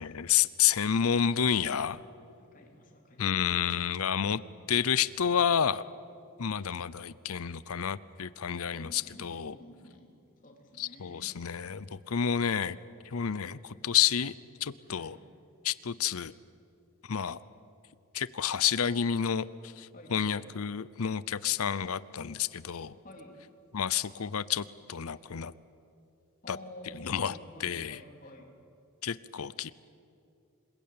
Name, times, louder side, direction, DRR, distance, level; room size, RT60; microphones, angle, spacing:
voice 1, 0.0-2.0 3.2-4.4 4.7-5.8 6.4-9.6 10.8-12.8 13.1-14.3 14.6-15.2 15.6-16.3 17.1-17.4 18.1-23.0 23.7-25.5 26.5-26.6 26.9-28.0 29.0-29.7, left 8 dB, 75° left, 18 dB, 0.6 m, -30 dB
voice 2, 2.4-3.3 8.7-10.1 10.4-11.4 14.9-15.2 19.9-20.5 23.0-23.4 26.4-28.5, left 1 dB, 35° left, 1 dB, 3.7 m, -50 dB
27.5 x 21.5 x 8.7 m, 2.5 s
head